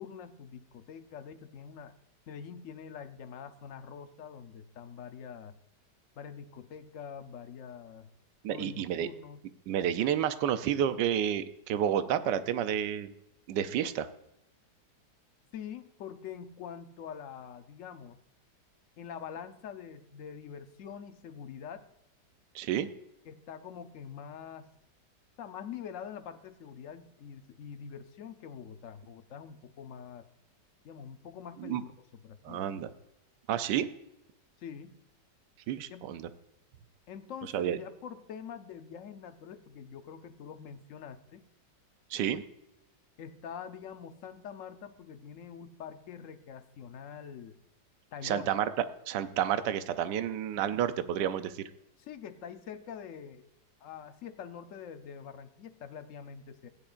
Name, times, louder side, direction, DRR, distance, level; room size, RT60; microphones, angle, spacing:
voice 1, 0.0-1.9 2.3-5.6 6.2-8.1 8.5-9.5 15.5-18.2 19.0-21.9 23.3-24.7 25.4-30.3 30.8-33.0 34.6-35.0 35.9-36.1 37.1-41.5 43.2-47.6 48.1-48.5 52.0-53.4 53.8-56.7, left 7 dB, 60° left, 9 dB, 0.9 m, -45 dB
voice 2, 8.4-9.1 9.7-13.1 13.5-14.1 22.5-22.9 31.6-31.8 32.4-32.9 33.5-33.9 35.7-36.3 37.5-37.8 42.1-42.4 48.2-51.6, right 10 dB, 80° right, 11 dB, 1.3 m, -30 dB
16.0 x 10.5 x 2.5 m, 0.86 s
omnidirectional pair, 1.9 m